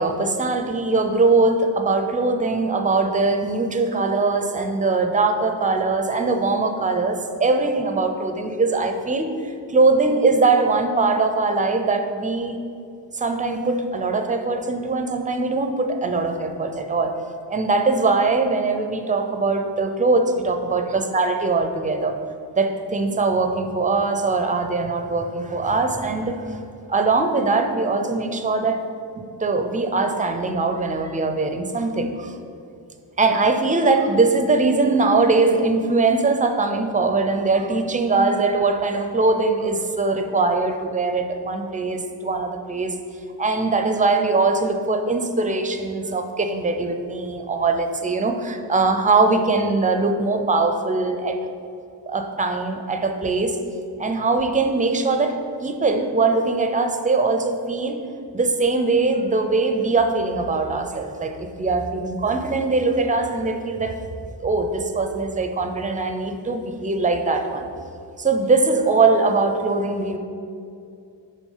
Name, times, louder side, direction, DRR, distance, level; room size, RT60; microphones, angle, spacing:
voice 1, 0.0-12.6 13.1-17.2 17.5-22.2 22.6-26.6 26.9-28.8 29.1-32.4 33.2-43.0 43.4-51.4 52.1-53.6 54.0-58.0 58.3-64.0 64.4-67.7 68.2-70.2, right 3 dB, 20° right, 6 dB, 0.5 m, -21 dB
6.2 x 3.9 x 5.5 m, 2.5 s
wide cardioid pair, 90°, 44 cm